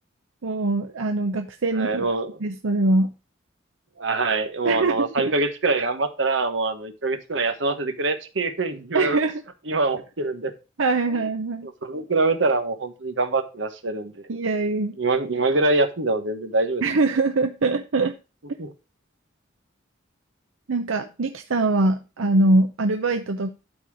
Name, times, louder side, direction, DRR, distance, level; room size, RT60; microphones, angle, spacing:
voice 1, 0.4-2.1 2.4-3.1 4.6-5.3 8.9-9.4 10.8-11.7 14.3-15.0 16.8-18.1 20.7-23.5, right 2 dB, 85° right, 0.7 m, -23 dB
voice 2, 1.7-2.3 4.0-9.2 9.7-10.5 11.1-11.2 11.6-14.2 15.0-16.8 18.6-18.7, right 3 dB, 70° right, 1.3 m, -24 dB
12.5 x 4.3 x 4.8 m
head